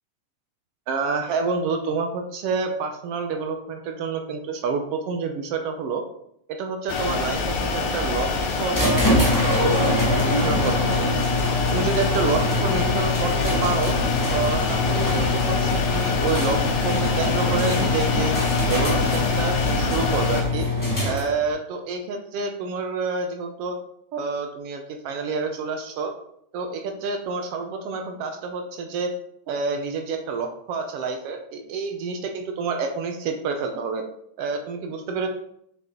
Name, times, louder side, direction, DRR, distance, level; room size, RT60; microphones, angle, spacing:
voice 1, 0.9-6.0 6.5-8.3 8.6-9.0 9.4-11.1 11.7-14.0 14.3-18.3 18.7-20.7 21.0-23.8 24.1-26.1 26.5-29.1 29.5-34.0 34.4-35.3, right 4 dB, 70° right, 4 dB, 1.5 m, -28 dB
sound 1, 6.9-20.4, left 3 dB, 85° left, 2.4 m, -26 dB
sound 2, 8.7-21.5, left 2 dB, 15° left, 0.7 m, -24 dB
6.0 x 5.8 x 3.9 m, 0.72 s
omnidirectional pair, 3.4 m